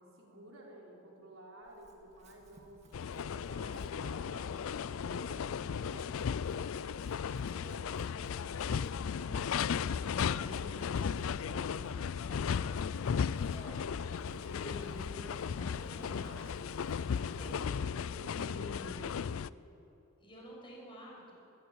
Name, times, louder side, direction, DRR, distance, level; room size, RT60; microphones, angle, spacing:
voice 1, 0.0-6.2 17.3-18.6, right 1 dB, 70° right, -2 dB, 4.6 m, -54 dB
Chewing mastication / Livestock farm animals working animals, 1.6-18.2, right 1 dB, 35° right, 2.4 m, -63 dB
sound 1, 2.9-19.5, left 7 dB, 75° left, 0.4 m, -36 dB
Boat Water vehicle, 3.3-17.1, equal, 15° right, 2.3 m, -60 dB
voice 2, 7.4-16.7 17.1-17.8 18.3-19.2 20.2-21.3, equal, 25° left, -3 dB, 6.3 m, -50 dB
21.5 x 15.0 x 8.6 m, 2.9 s
head